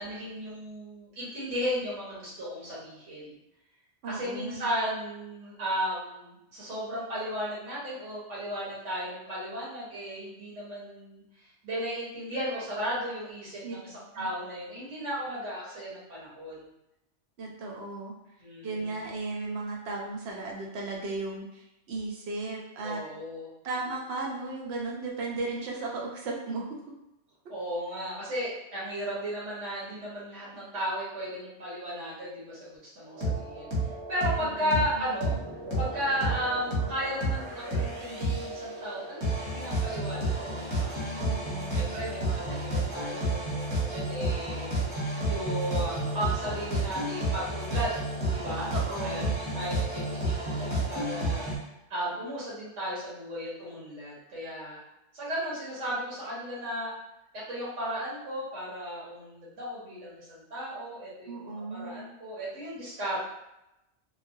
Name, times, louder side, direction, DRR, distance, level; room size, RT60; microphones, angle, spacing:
voice 1, 0.0-3.4 4.1-11.2 11.6-16.7 18.4-18.9 22.8-23.5 27.5-33.7 34.1-35.3 35.8-41.1 41.7-44.8 45.3-48.0 48.3-48.7 49.0-51.5 51.9-54.8 55.1-56.9 57.5-63.3, equal, 85° right, -7 dB, 1.4 m, -35 dB
voice 2, 4.0-4.7 13.6-13.8 14.1-14.3 17.4-18.1 18.6-23.0 23.6-26.8 34.4-34.8 41.2-41.9 48.7-49.3 61.3-62.1, right 3 dB, 65° right, -1 dB, 0.8 m, -35 dB
sound 1, 33.1-51.6, right 1 dB, 25° right, 0.8 m, -31 dB
3.1 x 2.1 x 2.6 m, 0.87 s
omnidirectional pair, 1.2 m